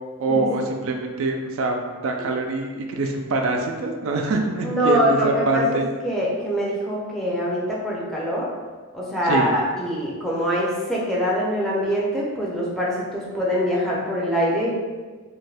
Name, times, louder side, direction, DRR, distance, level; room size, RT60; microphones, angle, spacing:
voice 1, 0.2-5.9 9.2-9.5, right 2 dB, 65° right, 3 dB, 0.3 m, -24 dB
voice 2, 4.6-8.5 8.9-14.7, equal, ahead, -6 dB, 0.5 m, -24 dB
2.6 x 2.4 x 3.3 m, 1.4 s
head